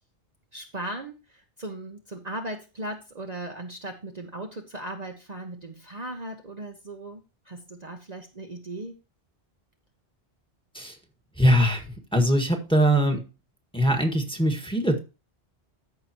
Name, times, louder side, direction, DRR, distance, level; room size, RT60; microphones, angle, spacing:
voice 1, 0.5-9.0, right 1 dB, 40° right, 3 dB, 1.0 m, -37 dB
voice 2, 11.4-11.8 12.1-13.2 13.7-15.0, equal, 5° left, 4 dB, 1.6 m, -22 dB
14.0 x 5.8 x 3.0 m, 0.30 s
omnidirectional pair, 1.1 m